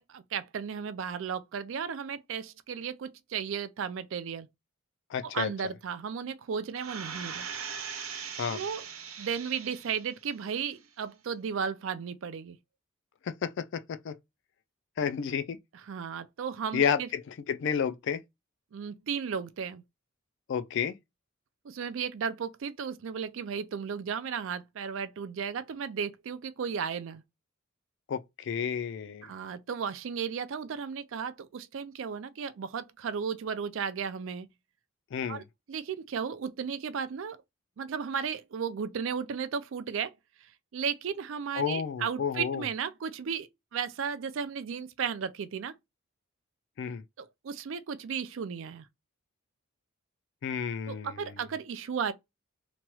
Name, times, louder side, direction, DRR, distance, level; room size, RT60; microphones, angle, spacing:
voice 1, 0.0-4.5 5.2-7.5 8.5-8.8 9.2-12.6 15.9-17.1 18.7-19.8 21.6-27.2 29.2-34.5 35.3-37.4 37.8-40.1 40.7-45.7 47.2-48.9 50.9-52.1, right 6 dB, 60° right, 0.4 m, -34 dB
voice 2, 5.1-5.5 8.4-8.6 13.2-14.2 15.0-15.6 16.7-18.2 20.5-21.0 28.1-29.2 35.1-35.4 41.6-42.6 46.8-47.0 50.4-51.4, left 7 dB, 55° left, 0.3 m, -31 dB
sound 1, 6.8-10.2 10.6-10.7, right 7 dB, 85° right, 0.8 m, -40 dB
2.9 x 2.2 x 3.0 m
head